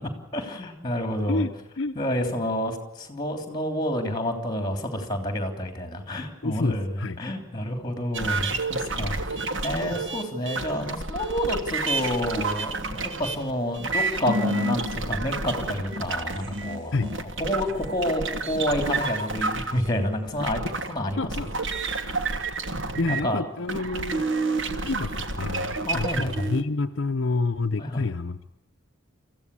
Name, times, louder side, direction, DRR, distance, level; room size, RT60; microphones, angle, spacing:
voice 1, 0.3-1.4 1.9-21.5 21.9-22.1 23.1-23.4 25.8-26.5 27.8-28.0, equal, 20° left, 5 dB, 3.2 m, -29 dB
voice 2, 1.3-1.9 6.4-7.2 16.9-17.1 21.2-21.5 23.0-24.3 24.8-28.4, left 3 dB, 60° left, 6 dB, 0.7 m, -28 dB
sound 1, 8.1-23.3 23.7-26.6, right 3 dB, 60° right, 1.5 m, -29 dB
24.5 x 15.0 x 8.4 m, 0.97 s
head